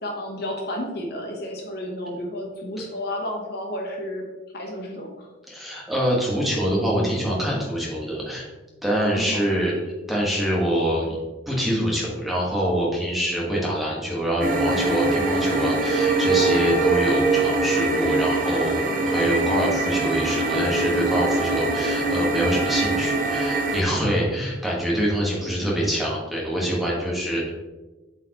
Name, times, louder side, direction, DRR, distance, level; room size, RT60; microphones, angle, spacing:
voice 1, 0.0-4.2 4.5-5.3 9.1-9.4, left 1 dB, 55° left, 1 dB, 1.0 m, -31 dB
voice 2, 5.5-8.5 8.8-9.7 10.1-11.2 11.5-27.5, equal, ahead, -5 dB, 1.4 m, -25 dB
sound 1, 14.4-23.8, right 2 dB, 45° right, 0.8 m, -23 dB
7.8 x 4.6 x 3.0 m, 1.2 s
head